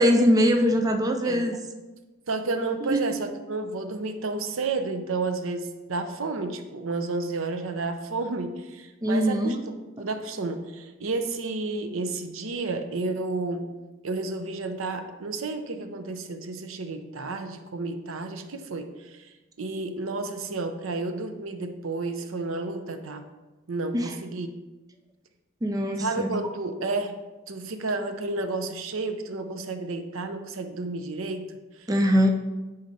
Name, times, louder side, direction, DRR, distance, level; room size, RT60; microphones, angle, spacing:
voice 1, 0.0-1.6 2.8-3.0 9.0-9.6 23.9-24.1 25.6-26.4 31.9-32.3, equal, 20° right, 4 dB, 0.5 m, -22 dB
voice 2, 2.3-13.6 14.0-23.2 23.7-24.5 26.0-27.2 27.5-31.5 31.8-31.9, right 3 dB, 85° right, 7 dB, 0.7 m, -31 dB
9.6 x 4.0 x 4.1 m, 1.2 s
head